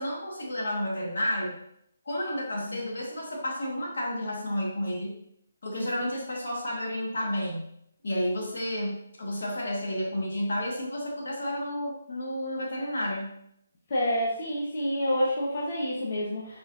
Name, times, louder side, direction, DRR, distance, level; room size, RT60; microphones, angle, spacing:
voice 1, 0.0-1.6 2.1-5.1 5.6-7.7 8.0-13.3, left 1 dB, 70° left, -2 dB, 1.9 m, -31 dB
voice 2, 13.9-16.6, equal, 50° left, -4 dB, 1.3 m, -28 dB
5.9 x 5.6 x 2.8 m, 0.75 s
figure-of-eight pair, 145°, 0 cm